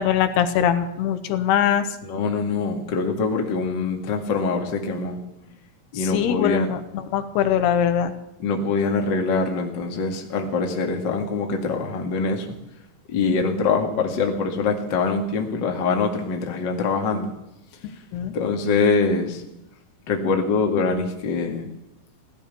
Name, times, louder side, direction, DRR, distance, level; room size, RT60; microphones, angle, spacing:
voice 1, 0.0-1.9 6.1-6.8 7.1-8.1 18.1-18.3, left 9 dB, 80° left, 9 dB, 3.1 m, -21 dB
voice 2, 2.0-5.2 5.9-6.7 8.4-12.6 13.1-17.3 18.3-19.4 20.1-21.7, left 4 dB, 35° left, 3 dB, 2.0 m, -24 dB
16.5 x 13.0 x 6.8 m, 0.89 s
omnidirectional pair, 4.6 m